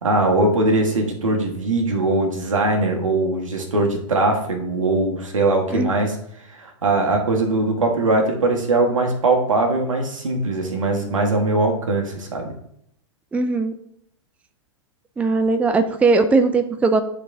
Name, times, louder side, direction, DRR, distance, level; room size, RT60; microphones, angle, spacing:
voice 1, 0.0-6.1 6.6-12.5, right 2 dB, 85° right, 2 dB, 1.5 m, -21 dB
voice 2, 13.3-13.7 15.2-17.0, right 3 dB, 10° right, 9 dB, 0.4 m, -19 dB
9.9 x 4.0 x 2.7 m, 0.74 s
hypercardioid pair, 110°, 16 cm